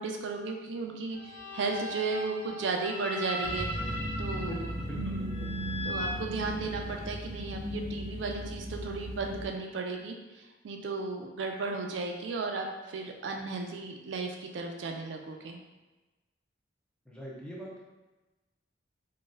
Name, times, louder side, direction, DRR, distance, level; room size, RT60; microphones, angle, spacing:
voice 1, 0.0-3.7 4.2-4.7 5.8-15.6, right 3 dB, 70° right, 2 dB, 0.3 m, -35 dB
sound 1, 1.1-7.1, left 1 dB, 65° left, 1.3 m, -39 dB
sound 2, 3.4-9.4, equal, 15° right, 0.8 m, -36 dB
voice 2, 4.3-5.6 17.1-17.8, equal, 5° left, -5 dB, 0.5 m, -42 dB
3.8 x 2.2 x 2.5 m, 1.1 s
head